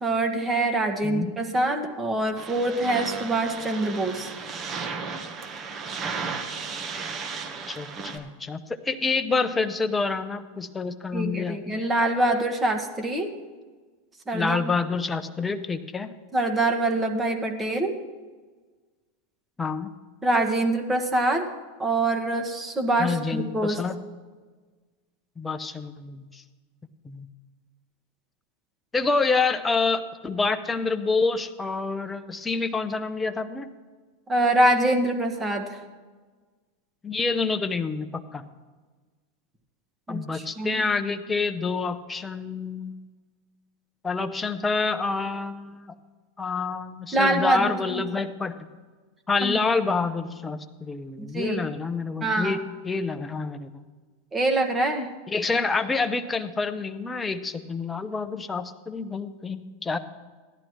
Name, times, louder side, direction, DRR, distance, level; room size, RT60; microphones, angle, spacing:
voice 1, 0.0-4.3 11.1-13.3 14.3-14.7 16.3-17.9 20.2-21.5 21.8-23.8 34.3-35.8 40.1-40.8 47.1-48.0 49.4-49.6 51.2-51.6 52.2-52.6 54.3-55.1, right 2 dB, 15° right, 5 dB, 1.4 m, -25 dB
voice 2, 1.0-1.3 7.7-11.9 14.3-16.1 19.6-19.9 23.0-24.0 25.4-26.4 27.0-27.3 28.9-33.7 37.0-38.4 40.1-43.0 44.0-45.9 46.4-48.6 49.3-52.6 52.8-53.8 55.3-60.0, left 4 dB, 15° left, 11 dB, 0.8 m, -27 dB
sound 1, 2.4-8.2, right 5 dB, 35° right, 1.3 m, -34 dB
16.0 x 11.0 x 3.2 m, 1.4 s
hypercardioid pair, 90°, 0 cm